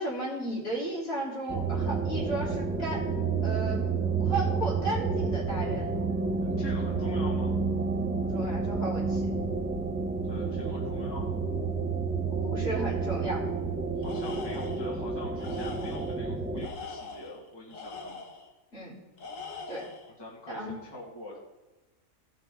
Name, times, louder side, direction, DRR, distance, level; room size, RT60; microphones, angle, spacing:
voice 1, 0.0-3.0 3.4-3.8 4.2-6.1 8.2-9.3 12.3-13.4 18.7-18.9 19.7-19.8 20.5-20.7, right 1 dB, 50° left, -7 dB, 3.7 m, -34 dB
sound 1, 1.5-16.7, right 4 dB, 10° right, 0.5 m, -30 dB
voice 2, 6.4-7.5 10.3-11.4 14.0-18.2 20.2-21.4, left 1 dB, 20° left, -5 dB, 1.7 m, -44 dB
Tools, 14.0-14.9 15.4-16.2 16.6-18.5 19.2-20.1, left 4 dB, 70° left, 1.5 m, -42 dB
17.0 x 6.0 x 3.7 m, 1.1 s
omnidirectional pair, 1.4 m